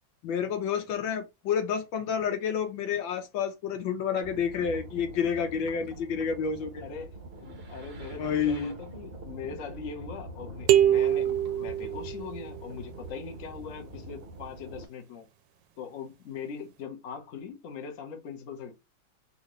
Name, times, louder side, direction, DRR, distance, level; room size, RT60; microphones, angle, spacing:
voice 1, 0.2-6.8 8.2-8.8, left 7 dB, 75° left, 1.5 m, -29 dB
sound 1, 4.2-14.8, right 2 dB, 55° right, 0.6 m, -44 dB
voice 2, 6.8-7.1 7.4-15.2 15.8-18.7, left 6 dB, 50° left, 1.1 m, -41 dB
sound 2, 10.7-12.6, right 11 dB, 75° right, 1.2 m, -24 dB
3.8 x 2.8 x 3.0 m
omnidirectional pair, 2.2 m